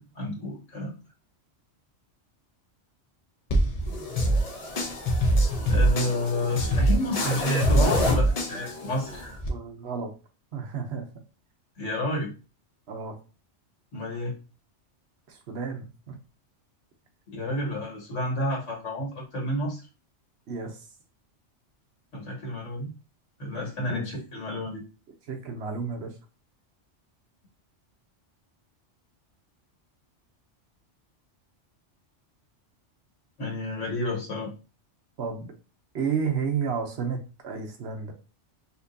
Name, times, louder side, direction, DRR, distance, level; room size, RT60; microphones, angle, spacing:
voice 1, 0.2-0.9 5.7-9.4 11.8-12.3 13.9-14.3 17.3-19.8 22.1-22.9 23.4-24.8 33.4-34.5, left 1 dB, 90° left, -2 dB, 1.9 m, -30 dB
sound 1, 3.5-9.5, equal, 40° left, 0.6 m, -24 dB
voice 2, 9.5-10.1 10.5-11.1 12.9-13.2 15.3-16.1 20.5-20.8 23.9-24.0 25.3-26.1 35.2-35.5 35.9-37.2 37.4-38.1, right 6 dB, 65° right, 4 dB, 1.0 m, -31 dB
4.2 x 2.6 x 2.6 m, 0.33 s
omnidirectional pair, 1.2 m